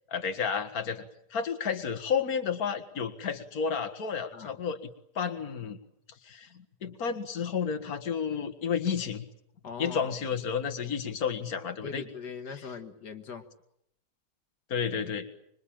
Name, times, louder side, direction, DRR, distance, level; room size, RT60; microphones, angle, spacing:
voice 1, 0.1-1.0 1.3-4.8 5.2-5.8 6.2-9.2 9.8-12.0 12.5-12.7 14.7-15.3, left 6 dB, 60° left, 7 dB, 2.1 m, -31 dB
voice 2, 9.6-10.1 11.8-13.5, left 5 dB, 75° left, 6 dB, 2.2 m, -40 dB
26.0 x 23.0 x 8.9 m, 0.76 s
omnidirectional pair, 1.8 m